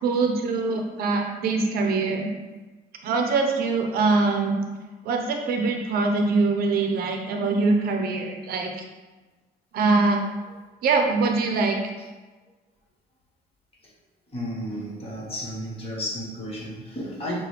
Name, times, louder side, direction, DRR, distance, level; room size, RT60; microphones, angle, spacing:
voice 1, 0.0-2.3 3.0-4.6 5.0-8.7 9.7-10.2 10.8-11.8, right 3 dB, 65° right, 3 dB, 0.6 m, -23 dB
voice 2, 14.3-17.5, equal, 35° left, -4 dB, 1.4 m, -32 dB
6.4 x 2.2 x 3.3 m, 1.3 s
cardioid pair, 110°, 17 cm